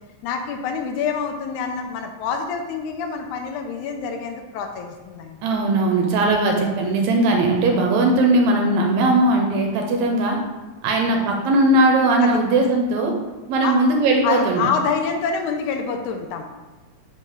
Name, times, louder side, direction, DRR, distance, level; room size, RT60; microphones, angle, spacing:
voice 1, 0.2-5.5 12.2-12.4 13.6-13.8 14.2-16.4, left 6 dB, 80° left, 4 dB, 2.0 m, -26 dB
voice 2, 5.4-10.4 10.8-13.1 13.5-14.6, right 2 dB, 75° right, 2 dB, 1.9 m, -19 dB
5.5 x 3.6 x 5.4 m, 1.2 s
omnidirectional pair, 3.6 m